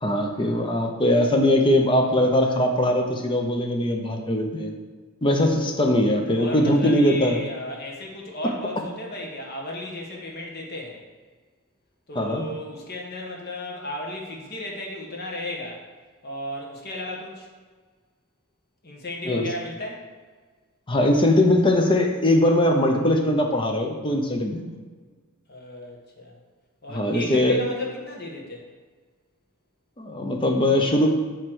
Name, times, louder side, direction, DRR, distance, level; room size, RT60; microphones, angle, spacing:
voice 1, 0.0-4.7 5.2-7.4 12.1-12.5 19.3-19.5 20.9-24.7 26.9-27.6 30.0-31.1, left 1 dB, 25° left, 3 dB, 0.7 m, -21 dB
voice 2, 6.3-11.0 12.1-15.8 16.2-17.5 18.8-20.1 25.5-26.4 26.8-28.6, left 1 dB, 45° left, 0 dB, 1.3 m, -34 dB
7.7 x 3.2 x 6.2 m, 1.5 s
head